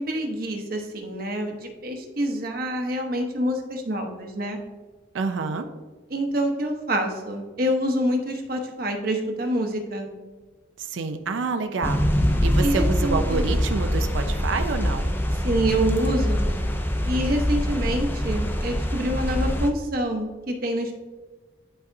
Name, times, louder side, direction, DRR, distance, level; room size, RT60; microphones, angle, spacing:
voice 1, 0.0-4.6 6.1-10.1 12.6-13.5 15.4-16.5 17.0-20.9, equal, 50° right, 3 dB, 0.9 m, -26 dB
voice 2, 5.1-5.7 10.8-12.1 12.4-15.1, right 4 dB, 75° right, 7 dB, 0.5 m, -28 dB
sound 1, 11.8-19.7, equal, 10° left, 0.4 m, -24 dB
11.0 x 4.1 x 2.6 m, 1.3 s
head